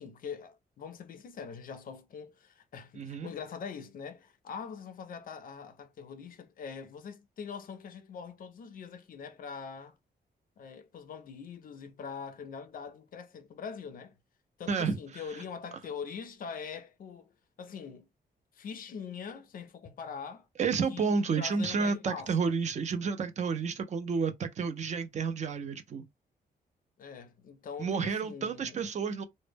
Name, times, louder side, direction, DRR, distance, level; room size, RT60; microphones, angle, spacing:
voice 1, 0.0-10.0 10.6-14.1 14.6-17.3 17.6-18.1 18.5-20.5 20.7-22.5 27.0-28.8, left 6 dB, 55° left, 0.4 m, -43 dB
voice 2, 3.0-3.3 14.7-15.2 20.6-26.0 27.8-29.2, right 5 dB, 45° right, 0.4 m, -31 dB
2.1 x 2.0 x 3.2 m
wide cardioid pair, 170°, 17 cm